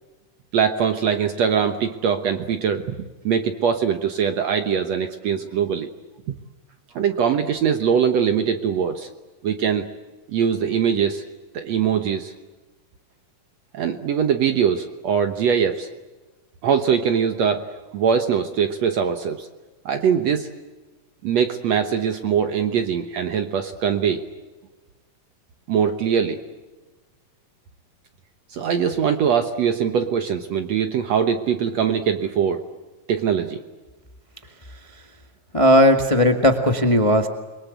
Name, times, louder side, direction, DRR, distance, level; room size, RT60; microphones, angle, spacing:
voice 1, 0.5-3.0 3.2-5.9 7.0-9.1 9.4-9.9 10.3-11.2 11.5-12.3 13.7-15.9 16.6-17.7 17.9-19.5 19.9-20.5 21.2-24.2 25.7-26.4 28.5-32.6 33.1-33.6, right 7 dB, 60° right, 7 dB, 1.9 m, -22 dB
voice 2, 35.5-37.3, equal, 35° left, 5 dB, 0.4 m, -16 dB
29.0 x 23.0 x 8.1 m, 1.2 s
omnidirectional pair, 4.1 m